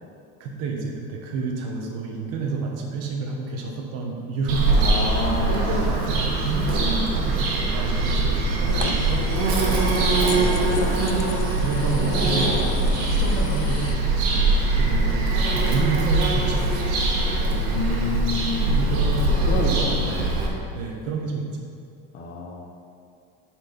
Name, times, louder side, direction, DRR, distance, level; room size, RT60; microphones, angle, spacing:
voice 1, 0.4-4.7 5.5-9.8 10.6-11.0 11.6-12.6 13.2-16.8 18.7-19.7 20.0-20.1 20.7-21.7, right 4 dB, 50° right, 0 dB, 1.2 m, -29 dB
Bird vocalization bird call bird song, 4.5-20.5, right 2 dB, 85° right, 1.6 m, -22 dB
voice 2, 4.7-5.9 6.7-7.0 10.2-11.1 12.1-12.7 14.9-15.2 17.5-18.9 19.4-20.4 22.1-22.6, left 3 dB, 30° left, -1 dB, 0.7 m, -30 dB
sound 1, 8.7-14.0, left 7 dB, 85° left, 0.6 m, -35 dB
7.5 x 4.5 x 5.3 m, 2.4 s
cardioid pair, 175°, 32 cm